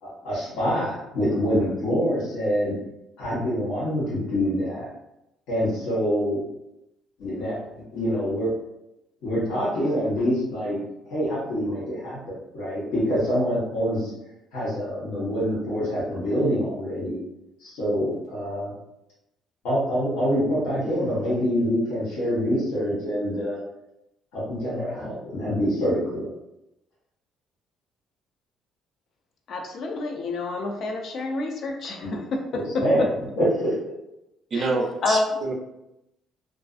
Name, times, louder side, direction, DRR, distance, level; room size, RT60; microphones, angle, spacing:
voice 1, 0.0-2.7 3.2-4.9 5.5-6.4 7.2-7.5 7.9-8.5 9.2-10.8 11.1-12.2 12.5-14.1 14.5-17.2 17.6-18.7 19.6-23.6 24.3-26.3 32.0-32.1 32.5-33.1 33.4-33.7, equal, 85° left, -8 dB, 1.1 m, -25 dB
voice 2, 29.5-33.1 34.5-34.7 35.0-35.3, left 3 dB, 50° left, 3 dB, 0.4 m, -28 dB
voice 3, 34.5-35.5, right 3 dB, 35° right, 1 dB, 0.4 m, -27 dB
2.5 x 2.4 x 2.4 m, 0.88 s
cardioid pair, 135°, 0 cm